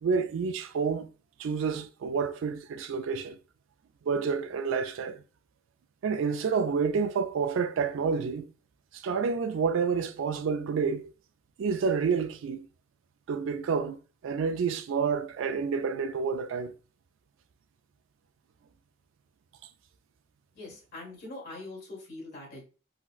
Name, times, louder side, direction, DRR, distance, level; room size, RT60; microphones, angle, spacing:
voice 1, 0.0-1.1 1.4-3.4 4.0-5.2 6.0-8.5 8.9-11.1 11.6-12.7 13.3-14.0 14.2-16.7, right 5 dB, 65° right, 0.3 m, -29 dB
voice 2, 20.5-22.6, left 2 dB, 50° left, 1.4 m, -43 dB
3.9 x 2.1 x 2.3 m
head